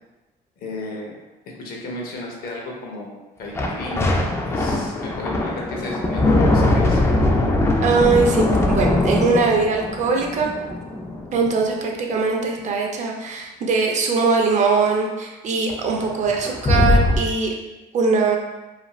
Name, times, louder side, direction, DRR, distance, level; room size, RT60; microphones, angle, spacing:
voice 1, 0.6-1.1 1.6-3.1 3.4-7.0, left 2 dB, 60° left, -1 dB, 0.7 m, -34 dB
sound 1, 3.5-11.5 15.7-15.8 16.0-17.2, left 2 dB, 15° left, 0.3 m, -21 dB
voice 2, 7.8-10.5 11.3-17.5 17.9-18.4, right 4 dB, 45° right, 1 dB, 0.5 m, -21 dB
2.5 x 2.3 x 3.0 m, 1.1 s
cardioid pair, 110°, 17 cm